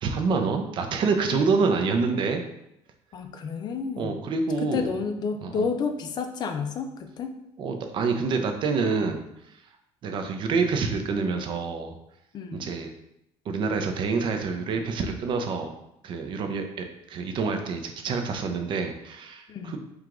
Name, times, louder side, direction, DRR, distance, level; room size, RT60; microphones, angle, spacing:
voice 1, 0.0-2.4 4.0-4.9 5.4-5.6 7.6-9.2 10.0-12.0 12.5-12.9 13.5-15.7 16.0-19.8, right 4 dB, 45° right, 5 dB, 0.5 m, -27 dB
voice 2, 3.1-4.2 4.6-7.3 12.3-12.7 19.5-19.8, left 5 dB, 40° left, 6 dB, 0.5 m, -30 dB
4.7 x 2.4 x 3.7 m, 0.82 s
cardioid pair, 135°, 11 cm